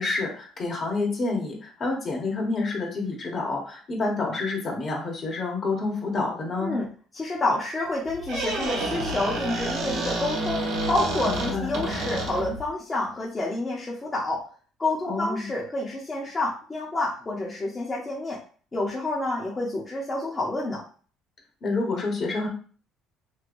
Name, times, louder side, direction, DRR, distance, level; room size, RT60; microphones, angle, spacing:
voice 1, 0.0-6.7 11.2-11.7 15.1-15.5 21.6-22.5, left 3 dB, 45° left, 0 dB, 1.2 m, -28 dB
voice 2, 7.1-14.4 14.8-18.4 18.7-20.8, left 2 dB, 25° left, -4 dB, 0.9 m, -28 dB
Squeak, 8.1-12.7, right 2 dB, 75° right, 1.0 m, -29 dB
3.3 x 2.8 x 2.6 m, 0.40 s
cardioid pair, 95°, 0 cm